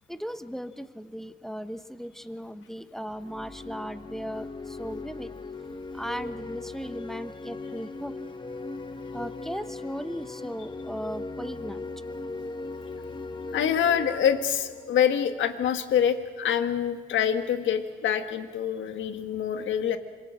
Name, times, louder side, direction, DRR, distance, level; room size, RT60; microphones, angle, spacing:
voice 1, 0.1-4.5 4.8-5.3 5.9-8.1 9.1-11.8, equal, ahead, 10 dB, 1.0 m, -37 dB
sound 1, 3.1-15.8, left 3 dB, 25° left, 1.5 m, -39 dB
voice 2, 13.5-20.0, left 8 dB, 75° left, 8 dB, 1.8 m, -26 dB
26.0 x 22.0 x 7.6 m, 1.6 s
cardioid pair, 90°, 20 cm